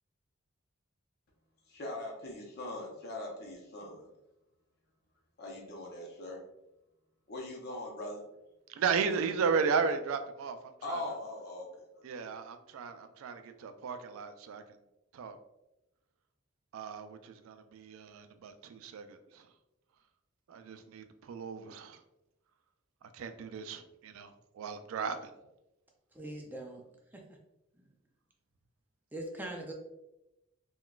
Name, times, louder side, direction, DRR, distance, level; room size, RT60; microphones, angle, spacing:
voice 1, 1.7-4.1 5.4-6.4 7.3-8.2 10.8-12.0, left 1 dB, 50° left, -1 dB, 0.7 m, -41 dB
voice 2, 8.7-10.6 10.9-11.0 12.0-14.6 15.1-15.4 16.7-19.5 20.5-22.0 23.0-25.3, right 5 dB, 80° right, 9 dB, 0.3 m, -35 dB
voice 3, 26.1-26.8 27.1-27.2 27.8-27.9 29.1-29.7, right 1 dB, 10° right, 0 dB, 0.4 m, -41 dB
3.7 x 2.3 x 2.3 m, 0.92 s
head